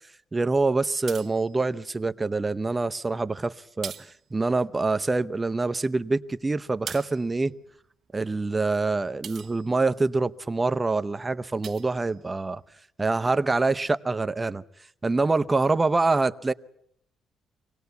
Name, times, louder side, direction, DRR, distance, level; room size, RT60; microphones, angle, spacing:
voice 1, 0.3-7.5 8.1-12.6 13.0-14.6 15.0-16.5, right 3 dB, 20° right, 0.8 m, -25 dB
sound 1, 0.8-2.0 2.7-3.3 3.6-5.1 5.4-10.3 10.7-11.0 11.3-12.7, right 8 dB, 55° right, 0.9 m, -44 dB
25.0 x 18.0 x 8.2 m
cardioid pair, 90°, 0 cm